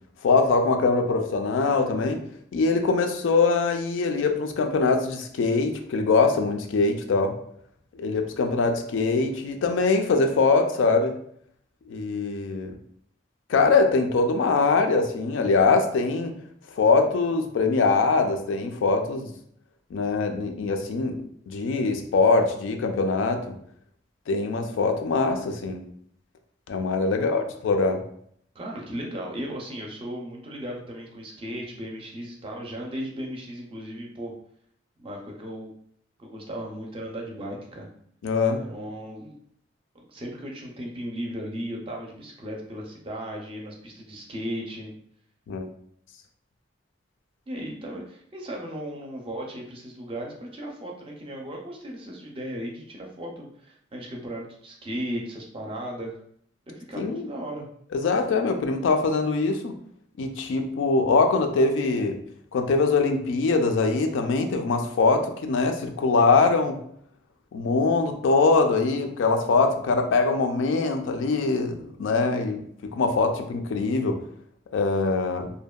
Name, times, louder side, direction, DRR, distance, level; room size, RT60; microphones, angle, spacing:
voice 1, 0.2-2.2 2.5-7.3 8.0-11.2 11.9-12.7 13.5-16.3 16.8-19.3 19.9-21.1 21.5-23.5 24.3-25.8 26.7-28.0 38.2-38.6 45.5-45.7 57.0-57.3 57.9-59.7 60.2-62.2 62.5-66.8 67.5-72.6 73.0-74.2 74.7-75.5, left 4 dB, 85° left, 5 dB, 0.3 m, -23 dB
voice 2, 27.1-27.5 28.5-34.3 35.0-35.7 36.2-37.9 38.6-39.4 39.9-44.9 47.5-56.2 56.7-57.6, equal, 30° right, 0 dB, 0.4 m, -36 dB
2.6 x 2.1 x 2.2 m, 0.66 s
head